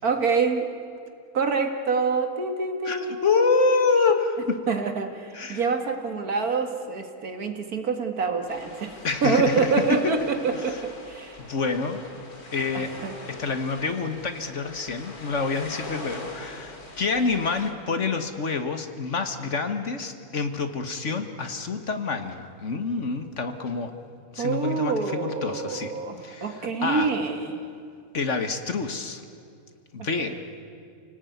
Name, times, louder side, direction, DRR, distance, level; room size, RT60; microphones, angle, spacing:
voice 1, 0.0-0.7 1.3-3.3 4.7-8.9 9.2-11.4 12.7-13.2 24.4-27.6 30.0-30.4, right 4 dB, 70° right, 5 dB, 2.5 m, -26 dB
voice 2, 2.9-4.6 5.3-5.6 9.0-10.1 10.6-10.8 11.4-12.0 12.5-12.9 13.3-23.9 24.3-25.9 26.2-27.1 28.1-29.2 29.9-30.4, left 4 dB, 50° left, 7 dB, 1.8 m, -27 dB
sound 1, 8.5-17.7, left 2 dB, 75° left, 3.3 m, -42 dB
29.5 x 18.5 x 9.5 m, 2.4 s
omnidirectional pair, 1.6 m